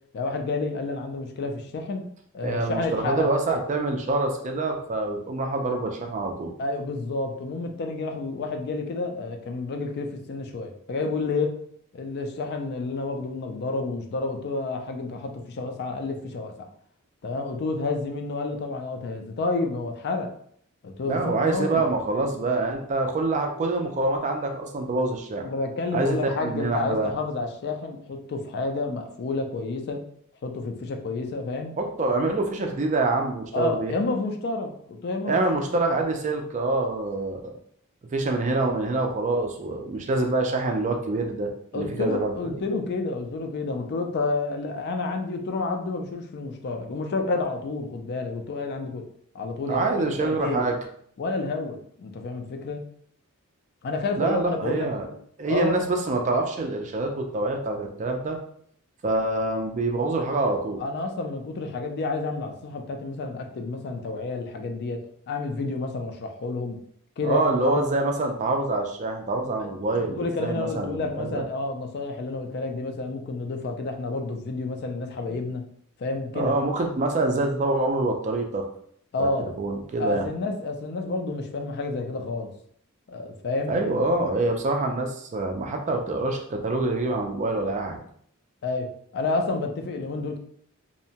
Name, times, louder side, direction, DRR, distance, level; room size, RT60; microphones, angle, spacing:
voice 1, 0.1-2.0 2.3-3.3 6.6-11.5 11.9-16.7 17.2-20.3 20.8-21.9 25.4-30.0 30.4-31.7 33.5-35.5 41.7-49.0 49.3-50.6 51.2-52.8 53.8-55.1 55.5-55.8 60.8-66.8 67.2-67.9 69.6-69.7 70.2-75.6 76.0-76.5 79.1-79.5 80.0-82.5 83.1-83.8 88.6-88.9 89.1-90.4, left 3 dB, 50° left, 4 dB, 0.4 m, -30 dB
voice 2, 2.4-6.5 21.1-25.5 25.9-27.1 31.8-33.9 35.2-37.6 38.1-42.6 49.7-50.8 54.2-55.0 55.4-58.4 59.0-60.8 67.2-71.4 76.3-78.6 79.2-80.2 83.7-88.0, right 2 dB, 35° right, 3 dB, 0.3 m, -26 dB
2.7 x 2.1 x 2.7 m, 0.64 s
head